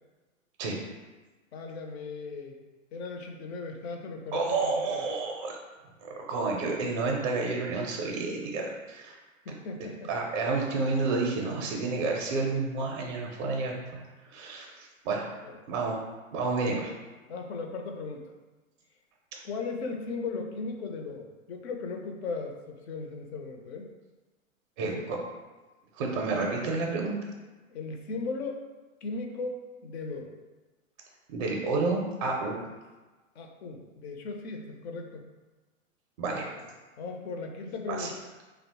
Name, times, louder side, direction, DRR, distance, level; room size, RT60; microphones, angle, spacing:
voice 1, 1.5-2.6 2.9-5.0 9.5-10.1 15.4-15.6 16.6-16.8 17.3-18.3 19.4-23.9 24.8-25.1 27.7-28.6 29.0-30.4 33.4-35.3 36.6-36.7 37.0-38.3, left 4 dB, 50° left, 3 dB, 0.5 m, -37 dB
voice 2, 4.3-5.5 6.0-9.2 10.1-15.3 15.7-16.0 16.3-16.9 24.8-25.2 26.0-27.2 31.3-32.6 36.2-36.5 37.9-38.1, right 3 dB, 35° right, 0 dB, 0.4 m, -30 dB
2.9 x 2.0 x 2.8 m, 1.2 s
hypercardioid pair, 115°, 41 cm